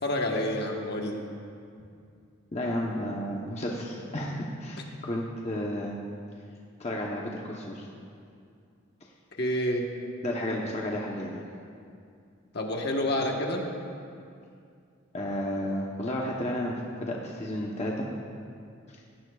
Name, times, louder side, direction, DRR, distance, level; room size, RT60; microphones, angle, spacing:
voice 1, 0.0-1.2 9.3-9.9 12.5-13.6, left 1 dB, 55° left, 1 dB, 1.3 m, -28 dB
voice 2, 2.5-6.0 6.8-7.9 10.2-11.4 15.1-18.1 18.9-19.0, left 1 dB, 35° left, -2 dB, 1.0 m, -32 dB
17.5 x 15.0 x 2.4 m, 2.4 s
head